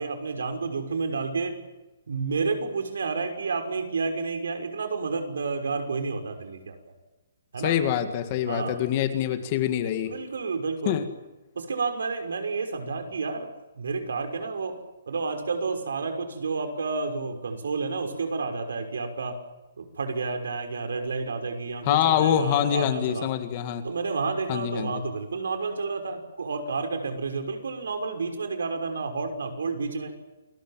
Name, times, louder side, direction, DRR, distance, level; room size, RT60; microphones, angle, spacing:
voice 1, 0.0-1.5 2.1-6.8 7.5-7.8 8.5-8.8 10.0-11.0 11.5-13.5 13.7-14.8 15.1-19.4 19.8-23.3 23.8-30.1, right 4 dB, 75° right, 6 dB, 6.0 m, -30 dB
voice 2, 7.6-10.1 10.9-11.1 21.8-23.8 24.5-25.0, left 10 dB, 25° left, 8 dB, 1.9 m, -25 dB
29.0 x 21.0 x 7.5 m, 1.1 s
hypercardioid pair, 180°, 0 cm